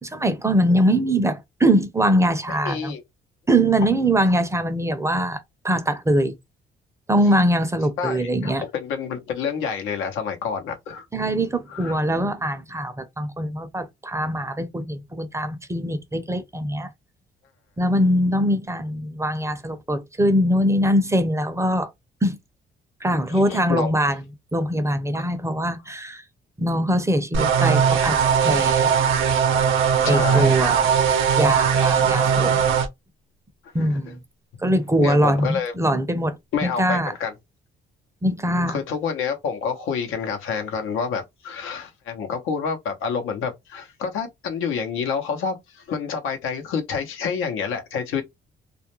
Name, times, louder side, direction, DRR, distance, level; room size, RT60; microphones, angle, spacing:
voice 1, 0.0-2.9 3.5-5.4 5.6-6.3 7.1-8.6 11.1-16.9 17.8-21.9 22.2-22.4 23.0-24.2 24.5-26.2 26.6-28.9 30.1-30.9 31.3-32.6 33.7-34.2 34.6-36.4 36.6-37.1 38.2-38.8, equal, 15° right, 0.5 m, -22 dB
voice 2, 2.5-3.0 8.0-11.0 11.7-12.0 23.3-23.9 30.0-30.6 35.0-35.7 36.5-37.3 38.7-48.2, left 6 dB, 90° left, 0.8 m, -28 dB
sound 1, 27.3-32.9, right 7 dB, 90° right, 0.6 m, -19 dB
2.4 x 2.1 x 2.9 m
cardioid pair, 90°, 20 cm